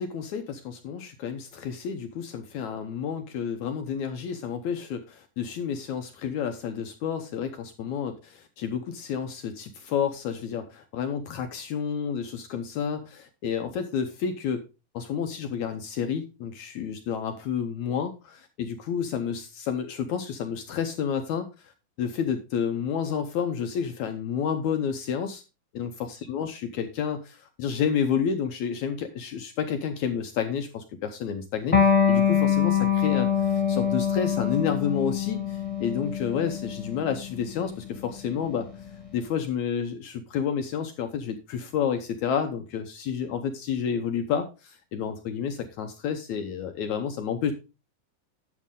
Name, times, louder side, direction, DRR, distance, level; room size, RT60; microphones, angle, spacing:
voice 1, 0.0-14.6 14.9-21.7 22.0-25.4 25.7-38.7 39.1-47.5, left 7 dB, 75° left, 7 dB, 1.8 m, -30 dB
Electric guitar, 31.7-38.9, left 8 dB, 15° left, 1.5 m, -25 dB
11.0 x 7.3 x 3.7 m, 0.29 s
omnidirectional pair, 4.1 m